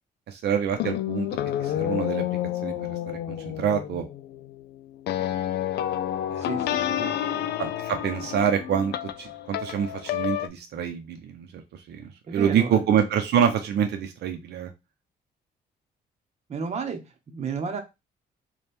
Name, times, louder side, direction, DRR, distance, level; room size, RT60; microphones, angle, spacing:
voice 1, 0.3-1.3 1.6-2.3 2.6-3.0 3.3-4.1 6.3-6.5 7.6-14.7, right 8 dB, 75° right, 0.6 m, -26 dB
sound 1, 0.8-10.5, left 11 dB, 80° left, 0.4 m, -30 dB
voice 2, 6.4-7.5 12.3-12.9 16.5-17.8, right 6 dB, 40° right, 0.8 m, -33 dB
3.3 x 2.3 x 4.3 m
cardioid pair, 130°, 17 cm